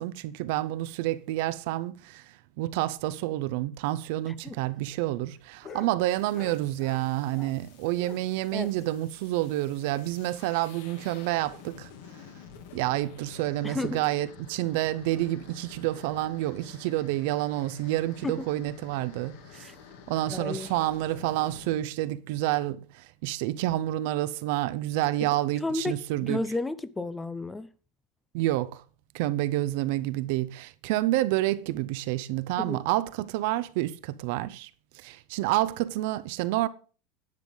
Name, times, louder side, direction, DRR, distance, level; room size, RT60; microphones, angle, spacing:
voice 1, 0.0-11.9 12.7-19.7 20.1-26.4 28.3-28.8 29.1-34.7 35.0-36.7, right 16 dB, 50° right, 0.6 m, -29 dB
sound 1, 4.2-7.7 8.0-9.9 10.2-10.3 10.6-10.7 11.1-11.2 11.8-12.1 12.9-13.1, left 5 dB, 25° left, 1.4 m, -49 dB
voice 2, 4.3-4.6 8.5-8.7 13.6-14.0 18.2-18.5 19.5-19.7 20.3-20.7 25.6-27.7 32.6-32.8, left 2 dB, 5° left, 0.4 m, -32 dB
sound 2, 6.1-21.8, left 7 dB, 65° left, 2.5 m, -50 dB
10.5 x 9.1 x 3.9 m
supercardioid pair, 175°, 0 cm